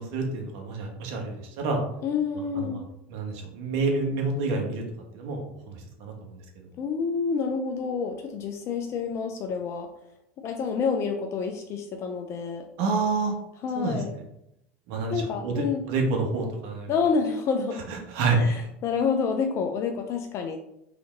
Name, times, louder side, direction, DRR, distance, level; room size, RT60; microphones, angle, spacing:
voice 1, 0.0-1.8 2.3-2.8 3.1-4.8 5.1-6.7 12.8-13.3 13.7-14.2 14.9-16.9 17.9-18.7, right 3 dB, 65° right, 2 dB, 1.3 m, -28 dB
voice 2, 2.0-2.8 6.8-9.9 10.4-12.6 13.6-14.1 15.1-15.8 16.9-17.8 18.3-20.6, left 5 dB, 45° left, 4 dB, 0.5 m, -28 dB
3.9 x 3.4 x 3.7 m, 0.80 s
hypercardioid pair, 100°, 7 cm